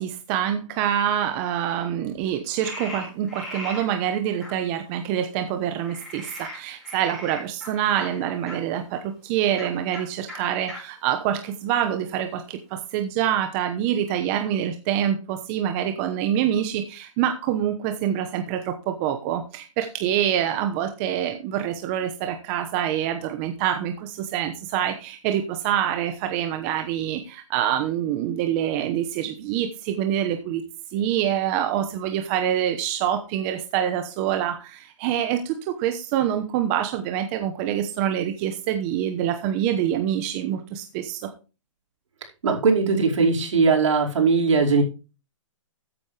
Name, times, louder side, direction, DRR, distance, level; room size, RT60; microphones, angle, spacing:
voice 1, 0.0-30.6 30.9-41.3, right 10 dB, 25° right, 7 dB, 1.0 m, -26 dB
Frog, 2.6-3.8 4.4-4.5 5.8-8.6 9.5-9.7 9.9-10.0 10.3-10.4 10.7-10.8 11.4-12.1, left 1 dB, ahead, 5.1 m, -38 dB
voice 2, 42.4-44.8, right 4 dB, 70° right, 0 dB, 5.1 m, -19 dB
14.0 x 8.5 x 3.4 m, 0.31 s
hypercardioid pair, 160°, 16 cm